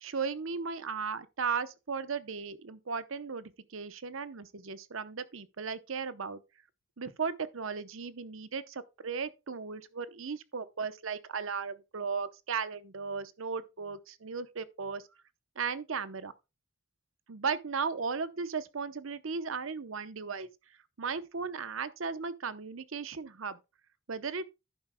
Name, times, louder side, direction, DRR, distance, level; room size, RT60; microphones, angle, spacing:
voice 1, 0.0-6.4 7.0-15.0 15.6-16.3 17.3-20.5 21.0-23.6 24.1-24.5, right 5 dB, 65° right, 0.8 m, -36 dB
11.0 x 9.8 x 2.2 m
head